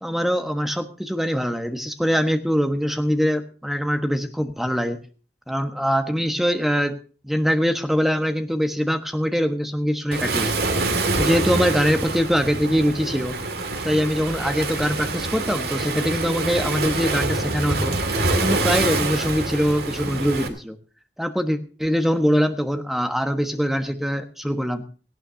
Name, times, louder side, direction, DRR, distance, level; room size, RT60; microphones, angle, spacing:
voice 1, 0.0-5.0 5.5-7.0 7.2-10.5 11.2-13.4 13.8-17.9 18.3-20.8 21.2-24.8, equal, ahead, 7 dB, 1.3 m, -23 dB
Waves surf, 10.1-20.5, right 2 dB, 60° right, 2.3 m, -25 dB
18.0 x 16.0 x 2.8 m, 0.37 s
head